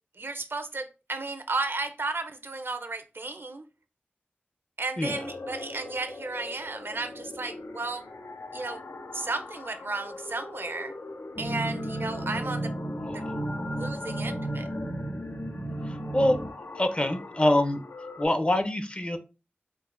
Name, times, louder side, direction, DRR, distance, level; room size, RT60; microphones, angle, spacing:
voice 1, 0.2-3.6 4.8-8.1 8.5-8.8 9.1-10.9 11.4-12.7 13.1-13.3 13.8-14.7, right 3 dB, 65° right, 8 dB, 0.4 m, -34 dB
sound 1, 5.0-18.2, left 2 dB, 85° left, 0.4 m, -42 dB
sound 2, 11.3-16.5, right 1 dB, 55° left, 1.5 m, -33 dB
voice 2, 16.8-17.8 18.2-19.2, left 1 dB, 30° left, 8 dB, 0.5 m, -24 dB
4.5 x 2.1 x 2.4 m, 0.31 s
wide cardioid pair, 45°, 4 cm